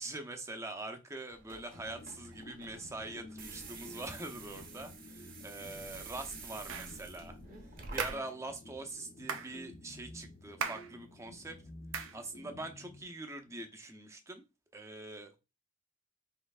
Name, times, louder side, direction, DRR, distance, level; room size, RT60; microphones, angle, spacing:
voice 1, 0.0-7.4 7.9-11.6 12.1-14.4 14.7-15.4, right 2 dB, 15° right, 0.6 m, -44 dB
sound 1, 1.3-8.1, right 4 dB, 45° right, 1.0 m, -48 dB
sound 2, 1.7-13.6, left 1 dB, 40° left, 0.6 m, -53 dB
sound 3, 6.7-7.0 8.0-8.3 9.3-9.5 10.6-10.9 11.9-12.2, right 6 dB, 75° right, 0.6 m, -37 dB
5.4 x 3.2 x 2.4 m
head